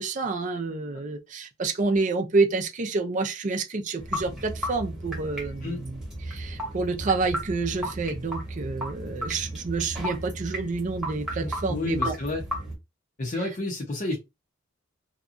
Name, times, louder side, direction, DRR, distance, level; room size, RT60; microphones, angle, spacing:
voice 1, 0.0-12.1, right 3 dB, 40° right, 0.5 m, -28 dB
sound 1, 4.0-12.7, equal, 5° right, 1.0 m, -34 dB
voice 2, 11.4-12.5 13.2-14.2, left 2 dB, 40° left, 0.7 m, -30 dB
2.8 x 2.3 x 2.5 m
head